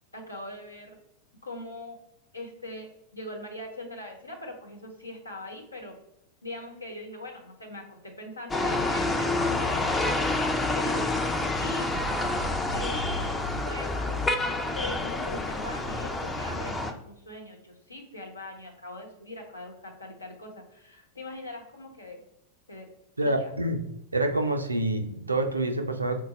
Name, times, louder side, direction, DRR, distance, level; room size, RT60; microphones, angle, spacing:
voice 1, 0.1-1.0 1.4-2.0 2.3-6.0 6.4-10.1 10.7-11.9 12.7-14.1 14.7-22.2 22.7-22.9 23.2-23.5, left 1 dB, 80° left, 2 dB, 1.0 m, -41 dB
sound 1, 8.5-16.9, left 2 dB, 15° left, 0.5 m, -28 dB
voice 2, 23.2-23.8 24.1-26.2, right 1 dB, 80° right, 6 dB, 0.5 m, -27 dB
3.9 x 2.2 x 4.0 m, 0.81 s
figure-of-eight pair, 90°, 0 cm